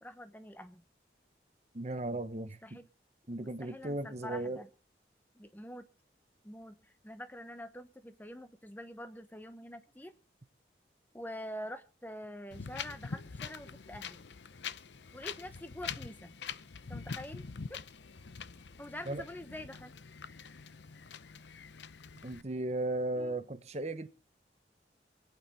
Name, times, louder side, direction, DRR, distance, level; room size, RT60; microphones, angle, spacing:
voice 1, 0.0-0.8 2.6-2.8 3.4-4.7 5.3-5.8 6.4-10.1 11.1-14.2 15.1-16.3 16.9-17.4 17.7-17.8 18.8-19.9 23.2-23.4, left 1 dB, 10° left, 1.0 m, -46 dB
voice 2, 1.7-2.8 3.3-4.6 19.1-19.2 22.2-24.1, right 2 dB, 35° right, 1.0 m, -36 dB
Wind, 12.5-22.4, left 6 dB, 75° left, 0.7 m, -44 dB
24.0 x 8.8 x 4.3 m
head